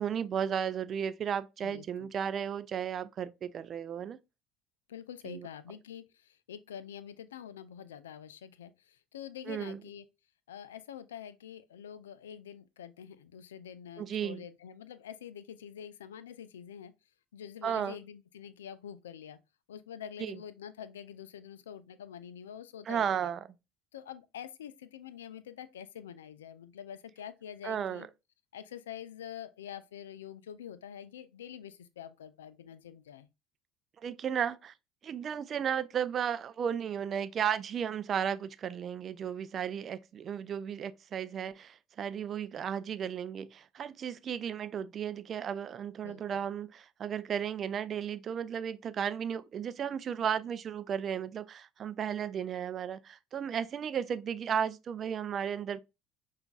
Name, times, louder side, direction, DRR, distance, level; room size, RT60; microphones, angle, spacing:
voice 1, 0.0-4.2 5.2-5.5 9.5-9.8 14.0-14.4 17.6-18.0 20.2-20.4 22.9-23.4 27.6-28.0 34.0-34.7 35.0-55.8, right 8 dB, 45° right, 0.3 m, -34 dB
voice 2, 1.6-2.1 4.9-10.0 10.5-16.9 17.3-19.4 19.7-23.3 23.9-28.1 28.5-33.3 46.0-46.5, left 9 dB, 80° left, 0.3 m, -46 dB
5.7 x 2.4 x 2.3 m
hypercardioid pair, 65°, 0 cm